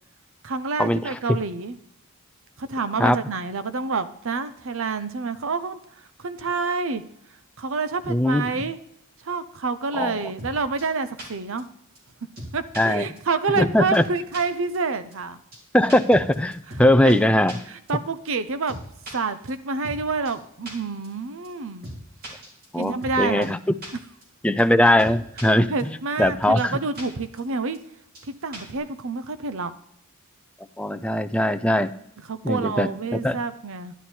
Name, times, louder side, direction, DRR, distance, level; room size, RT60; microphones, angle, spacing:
voice 1, 0.4-1.8 2.6-5.8 6.2-7.0 7.6-8.8 9.2-11.7 12.5-15.4 17.0-17.2 17.7-18.8 19.1-21.9 22.8-23.5 25.7-27.8 28.3-29.7 32.3-33.9, right 4 dB, 65° right, 12 dB, 0.8 m, -28 dB
voice 2, 8.1-8.5 9.9-10.2 12.8-13.1 13.6-14.0 15.7-17.6 22.7-23.6 24.4-25.9 26.2-26.8 30.8-31.9 32.4-33.4, left 1 dB, 5° left, 10 dB, 0.4 m, -20 dB
sound 1, 10.4-10.5 10.8-10.9 11.2-11.3 11.6-11.7 11.9-12.0 12.4-12.8 13.2-13.3 13.5-13.7 13.9-14.0 14.3-14.4 14.7-14.8 15.1-15.2 15.5-15.6 15.9-16.8 17.1-17.2 17.5-17.6 17.9-18.0 18.3-18.4 18.7-19.1 19.5-19.6 19.8-20.0 20.2-20.3 20.7-20.8 21.0-21.1 21.4-21.5 21.8-22.0 22.2-23.1 23.4-23.5 23.8-23.9 24.2-24.3 24.6-24.7 25.0-25.5 25.8-25.9 26.2-26.3 26.6-26.7 26.9-27.0 27.4-27.5 27.7-27.8 28.1-28.2 28.5-28.8, right 1 dB, 45° right, 3.7 m, -38 dB
11.0 x 11.0 x 4.4 m, 0.74 s
head